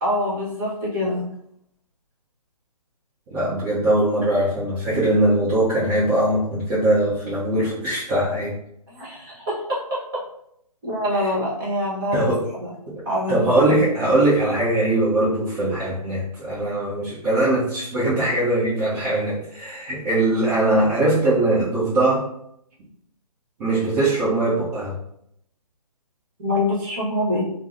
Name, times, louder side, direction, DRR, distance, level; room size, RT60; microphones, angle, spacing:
voice 1, 0.0-1.2 8.9-10.0 10.8-12.3 12.6-12.7 13.0-13.7 26.4-27.4, left 1 dB, 35° right, -5 dB, 1.2 m, -25 dB
voice 2, 3.3-8.5 12.1-12.5 12.9-13.0 13.3-22.2 23.6-24.9, right 1 dB, 20° right, -11 dB, 0.6 m, -21 dB
3.3 x 2.0 x 2.6 m, 0.75 s
figure-of-eight pair, 140°, 19 cm